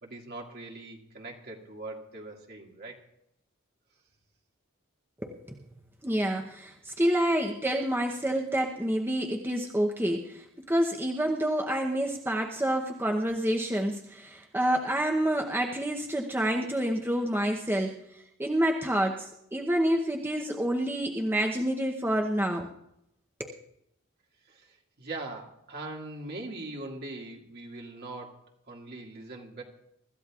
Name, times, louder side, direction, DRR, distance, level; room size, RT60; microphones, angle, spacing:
voice 1, 0.0-3.0 24.5-29.6, right 2 dB, 50° right, 0 dB, 2.2 m, -41 dB
voice 2, 5.2-5.6 6.0-18.0 18.4-22.7 23.4-23.6, right 1 dB, 10° right, 1 dB, 0.8 m, -28 dB
24.0 x 13.5 x 2.4 m, 0.77 s
head